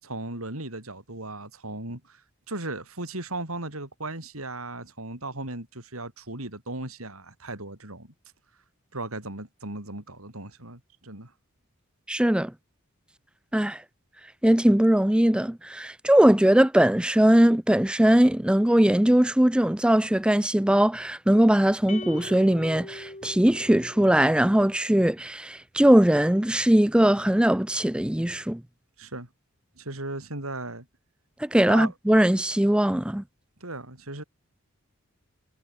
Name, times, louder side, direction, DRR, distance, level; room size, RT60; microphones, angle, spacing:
voice 1, 0.0-2.2 2.5-8.1 8.9-11.3 29.0-29.3 29.8-30.9 31.7-31.9 33.6-34.2, right 2 dB, 90° right, 6.5 m, -36 dB
voice 2, 12.1-12.5 13.5-13.8 14.4-28.6 31.4-33.2, right 1 dB, 5° right, 0.4 m, -20 dB
sound 1, 21.9-24.4, left 2 dB, 35° left, 5.1 m, -41 dB
head